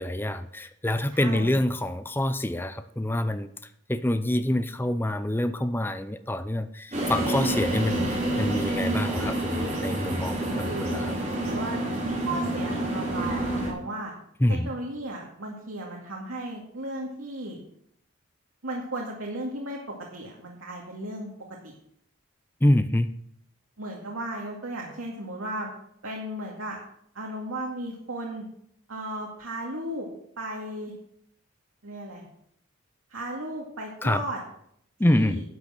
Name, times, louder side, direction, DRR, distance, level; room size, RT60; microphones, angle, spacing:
voice 1, 0.0-3.5 3.9-11.1 14.4-14.7 22.6-23.1 34.0-34.2 35.0-35.4, left 1 dB, 10° left, 10 dB, 0.5 m, -26 dB
voice 2, 1.1-1.6 10.6-11.0 11.4-11.8 12.2-14.1 14.5-17.6 18.6-21.3 21.6-21.7 23.8-25.7 26.0-26.8 27.1-28.5 28.9-30.1 30.4-30.9 31.8-32.2 33.1-34.4 35.0-35.4, right 1 dB, 85° right, -2 dB, 2.2 m, -35 dB
sound 1, 6.9-13.7, right 1 dB, 30° right, 3.6 m, -28 dB
12.0 x 6.4 x 7.7 m, 0.70 s
head